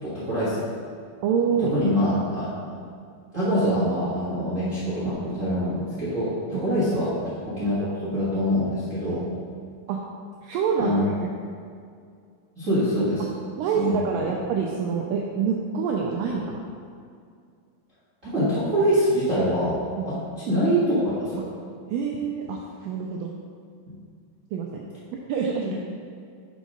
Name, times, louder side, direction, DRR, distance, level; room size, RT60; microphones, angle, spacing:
voice 1, 0.0-0.6 1.6-2.8 3.3-7.1 7.4-9.2 10.8-11.0 12.6-13.2 13.7-14.3 18.2-20.2 20.5-21.5 23.9-24.0, equal, 60° right, -11 dB, 0.8 m, -24 dB
voice 2, 1.2-1.7 6.5-6.6 9.9-10.0 10.4-11.3 13.2-13.3 13.6-16.6 20.0-20.3 21.9-23.3 24.5-24.8 25.3-25.7, right 6 dB, 85° right, 0 dB, 1.9 m, -26 dB
6.2 x 4.7 x 5.3 m, 2.3 s
omnidirectional pair, 4.4 m